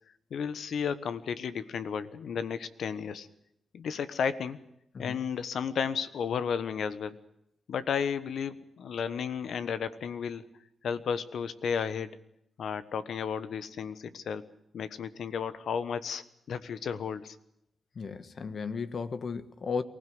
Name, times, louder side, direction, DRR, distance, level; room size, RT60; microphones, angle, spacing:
voice 1, 0.3-3.3 3.7-4.6 5.0-7.2 7.7-10.4 10.8-12.1 12.6-14.4 14.7-17.4, left 7 dB, 80° left, 1.3 m, -33 dB
voice 2, 17.9-19.8, left 5 dB, 60° left, 1.4 m, -35 dB
23.5 x 16.5 x 9.5 m
cardioid pair, 65°, 0 cm